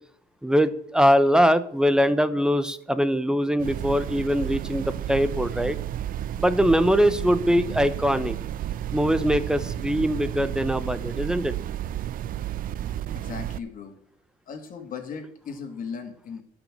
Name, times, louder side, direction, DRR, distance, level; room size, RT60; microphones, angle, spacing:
voice 1, 0.4-5.8 6.4-8.4 8.9-11.5, equal, 5° right, 13 dB, 0.9 m, -22 dB
sound 1, 3.6-13.6, right 11 dB, 55° right, 0.5 m, -32 dB
voice 2, 13.1-13.9 14.5-16.4, left 6 dB, 55° left, 5 dB, 2.6 m, -37 dB
11.5 x 6.0 x 7.6 m, 0.66 s
cardioid pair, 110°, 17 cm